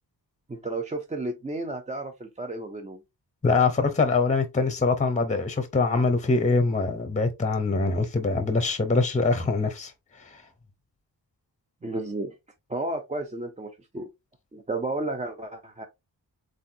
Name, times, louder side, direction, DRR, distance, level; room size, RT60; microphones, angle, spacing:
voice 1, 0.5-3.0 11.8-12.3 12.7-14.1 14.5-15.9, right 2 dB, 20° right, 0.5 m, -32 dB
voice 2, 3.4-9.9 10.2-10.4, left 3 dB, 20° left, 0.7 m, -24 dB
7.4 x 2.6 x 2.7 m
wide cardioid pair, 170°, 40 cm